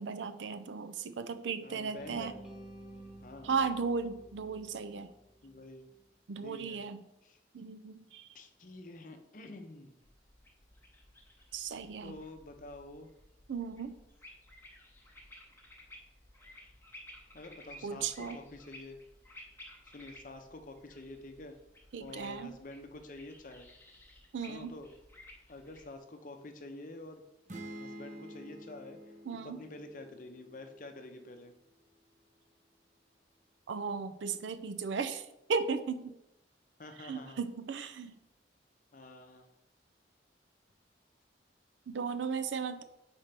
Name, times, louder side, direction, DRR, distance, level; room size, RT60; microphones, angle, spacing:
voice 1, 0.0-2.3 3.4-5.1 6.3-7.0 7.5-8.3 11.5-12.1 13.5-14.0 17.8-18.4 21.9-22.5 24.3-24.7 29.3-29.6 33.7-36.1 37.0-38.2 41.9-42.8, right 5 dB, 80° right, 10 dB, 0.5 m, -36 dB
voice 2, 1.6-2.3 3.2-3.6 5.4-5.9 6.4-6.8 7.2-7.4 8.3-10.0 12.0-13.1 17.3-19.0 19.8-21.6 22.0-23.7 24.5-24.9 25.5-27.2 27.8-31.5 36.8-37.4 38.9-39.5, left 2 dB, 45° left, 6 dB, 0.7 m, -48 dB
sound 1, 2.0-6.0, right 1 dB, 5° right, 1.1 m, -52 dB
sound 2, 10.0-26.0, left 1 dB, 10° left, 0.8 m, -56 dB
sound 3, 27.5-31.2, right 1 dB, 40° right, 0.6 m, -49 dB
4.3 x 4.3 x 5.2 m, 0.87 s
head